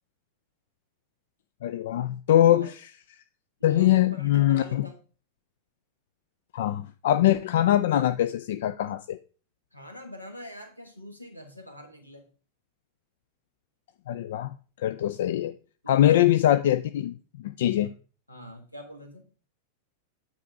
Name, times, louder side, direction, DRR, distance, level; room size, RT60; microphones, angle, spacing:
voice 1, 1.6-2.9 3.6-4.9 6.5-9.2 14.1-15.5 15.9-17.9, left 12 dB, 55° left, 0.4 m, -23 dB
voice 2, 3.6-4.9 9.7-12.2 15.8-16.3 17.7-17.9 18.3-19.2, left 1 dB, 85° left, 1.7 m, -43 dB
9.5 x 4.2 x 4.8 m
figure-of-eight pair, 90°, 0 cm